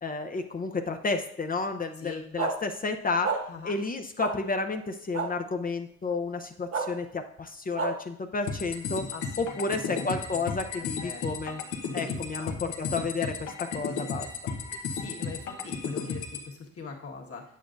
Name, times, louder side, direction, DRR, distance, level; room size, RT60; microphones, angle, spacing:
voice 1, 0.0-3.4 3.6-9.0 9.4-11.6 11.9-14.3, left 4 dB, 30° left, 6 dB, 0.6 m, -31 dB
sound 1, 2.4-2.5 3.2-3.4 4.2-4.3 5.1-5.3 6.7-6.8 7.8-7.9, right 4 dB, 55° right, 1.4 m, -28 dB
voice 2, 3.5-3.8 9.1-10.4 10.8-11.2 12.0-12.6 14.7-17.4, left 4 dB, 50° left, 0 dB, 1.6 m, -43 dB
sound 2, 8.5-16.5, left 5 dB, 85° left, 1.1 m, -34 dB
8.3 x 8.1 x 2.6 m, 0.70 s
cardioid pair, 90°, 30 cm